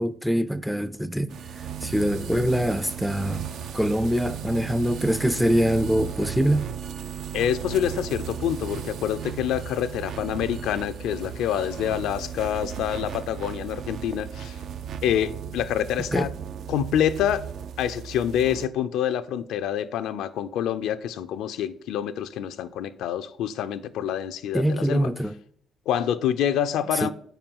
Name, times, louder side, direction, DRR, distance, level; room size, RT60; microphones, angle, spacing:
voice 1, 0.0-6.7 16.1-16.3 24.5-25.4 26.9-27.1, equal, ahead, 0.3 m, -24 dB
sound 1, 1.3-18.7, right 8 dB, 70° right, 0.4 m, -35 dB
voice 2, 7.3-14.6 15.0-16.3 16.7-17.4 17.8-25.1 25.9-27.1, left 10 dB, 90° left, 0.4 m, -27 dB
5.8 x 4.3 x 5.4 m
cardioid pair, 90°, 0 cm